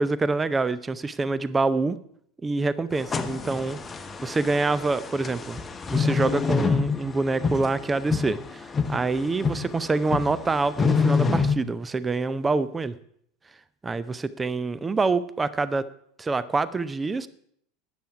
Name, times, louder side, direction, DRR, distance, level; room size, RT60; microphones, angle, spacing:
voice 1, 0.0-2.0 2.4-3.8 4.2-5.6 5.9-12.9 13.8-15.9 16.2-17.3, right 3 dB, 15° right, 17 dB, 0.6 m, -26 dB
sound 1, 2.9-11.6, left 5 dB, 20° left, 0.9 m, -27 dB
12.5 x 9.1 x 4.8 m, 0.68 s
figure-of-eight pair, 80°, 0 cm